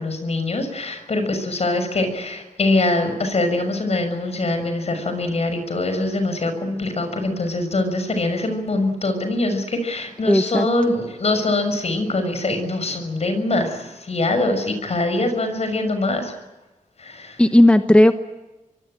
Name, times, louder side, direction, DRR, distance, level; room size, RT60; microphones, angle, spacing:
voice 1, 0.0-16.3 17.0-17.4, left 2 dB, 50° left, 8 dB, 6.4 m, -23 dB
voice 2, 10.3-10.7 17.4-18.1, left 1 dB, 10° left, 8 dB, 1.1 m, -14 dB
26.5 x 23.0 x 9.0 m, 1.1 s
wide cardioid pair, 95°, 14 cm